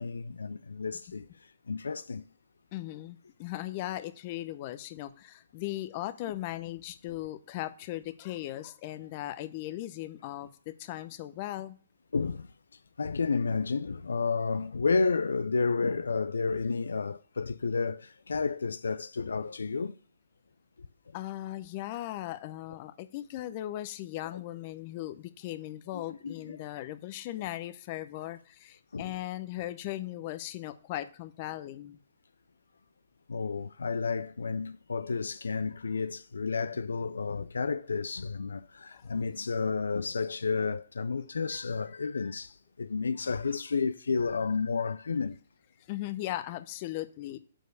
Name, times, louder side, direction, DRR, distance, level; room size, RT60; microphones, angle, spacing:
voice 1, 0.0-2.2 12.1-12.5 13.0-20.0 24.3-24.4 25.9-26.6 28.9-29.2 33.3-45.4, left 4 dB, 80° left, 0.4 m, -31 dB
voice 2, 2.7-11.7 21.1-32.0 38.9-39.2 45.9-47.4, left 15 dB, 40° left, 0.7 m, -38 dB
6.5 x 4.7 x 6.7 m
hypercardioid pair, 135°, 0 cm